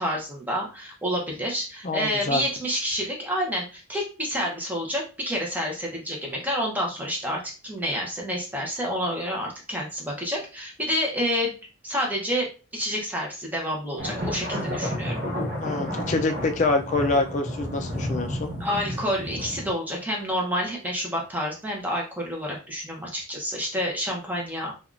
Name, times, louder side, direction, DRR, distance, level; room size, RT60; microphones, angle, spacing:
voice 1, 0.0-11.5 11.8-15.2 18.6-24.7, equal, 10° right, -1 dB, 0.7 m, -29 dB
voice 2, 1.8-2.4 15.6-18.5, left 2 dB, 35° left, 4 dB, 0.4 m, -25 dB
sound 1, 14.0-19.7, equal, 45° right, 0.8 m, -31 dB
3.4 x 2.3 x 2.4 m, 0.34 s
head